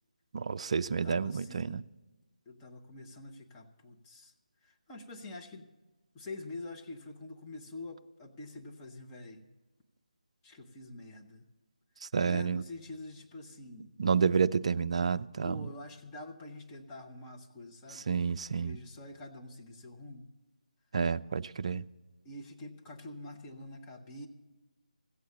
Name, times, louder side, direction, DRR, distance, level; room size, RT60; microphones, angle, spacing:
voice 1, 0.3-1.8 12.1-12.6 14.0-15.7 17.9-18.8 20.9-21.8, right 6 dB, 50° right, 0.4 m, -29 dB
voice 2, 0.9-1.9 2.5-4.3 4.6-5.7 6.1-9.5 10.4-11.5 12.0-14.0 15.4-18.1 18.5-20.3 22.2-24.3, left 2 dB, 15° left, 0.9 m, -46 dB
15.0 x 8.0 x 6.9 m
figure-of-eight pair, 155°, 4 cm